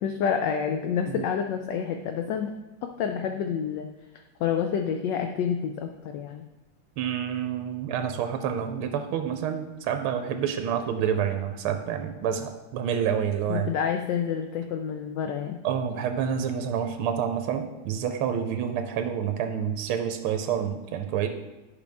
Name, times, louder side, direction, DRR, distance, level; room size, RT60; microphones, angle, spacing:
voice 1, 0.0-2.5 2.8-3.9 4.4-6.4 13.5-15.6, left 7 dB, 75° left, 5 dB, 1.0 m, -28 dB
voice 2, 7.0-13.7 15.6-21.3, right 8 dB, 80° right, 7 dB, 1.5 m, -28 dB
11.0 x 5.1 x 3.5 m, 1.1 s
omnidirectional pair, 2.4 m